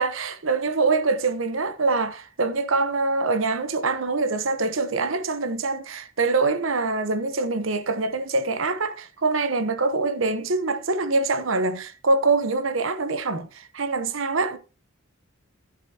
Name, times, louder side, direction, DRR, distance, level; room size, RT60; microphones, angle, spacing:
voice 1, 0.0-14.6, right 3 dB, 70° right, 1.0 m, -24 dB
12.0 x 10.5 x 2.9 m
head